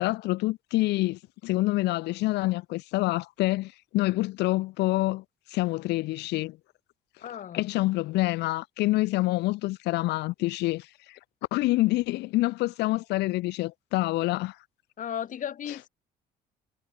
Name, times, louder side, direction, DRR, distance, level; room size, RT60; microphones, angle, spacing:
voice 1, 0.0-5.2 5.5-6.6 7.5-11.2 11.5-14.6, left 19 dB, 85° left, 1.3 m, -27 dB
voice 2, 7.2-7.7 15.0-15.9, left 9 dB, 50° left, 3.4 m, -35 dB
cardioid pair, 110°, 17 cm